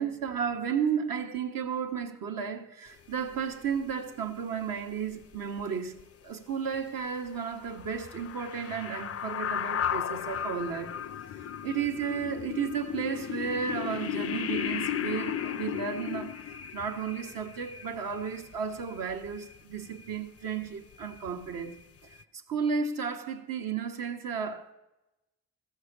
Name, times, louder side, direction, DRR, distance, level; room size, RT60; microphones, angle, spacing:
voice 1, 0.0-10.9 11.6-16.4 16.7-21.8 22.5-24.7, right 6 dB, 75° right, 1.1 m, -33 dB
sound 1, 3.4-3.5 3.8-3.9 5.3-5.6 6.0-6.1 7.6-19.6 19.9-20.1 20.5-20.7 21.0-21.8 22.1-22.2, left 9 dB, 45° left, 0.4 m, -35 dB
14.0 x 6.6 x 6.6 m
supercardioid pair, 45°, 34 cm